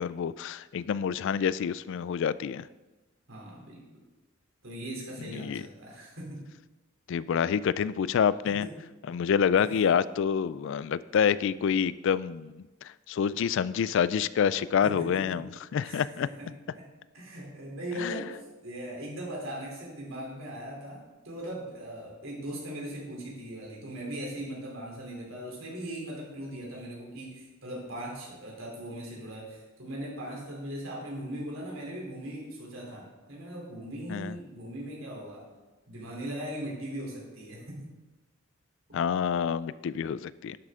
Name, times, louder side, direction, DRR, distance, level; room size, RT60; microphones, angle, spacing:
voice 1, 0.0-2.7 5.2-5.6 7.1-8.7 9.1-12.6 13.1-16.3 18.0-18.2 34.1-34.3 38.9-40.6, left 7 dB, 65° left, 17 dB, 0.3 m, -27 dB
voice 2, 3.3-3.8 4.6-6.4 8.6-8.7 9.6-9.7 14.8-15.4 15.8-16.9 17.1-35.4 35.9-37.9, right 1 dB, 75° right, -2 dB, 3.4 m, -39 dB
11.5 x 7.7 x 3.7 m, 1.2 s
head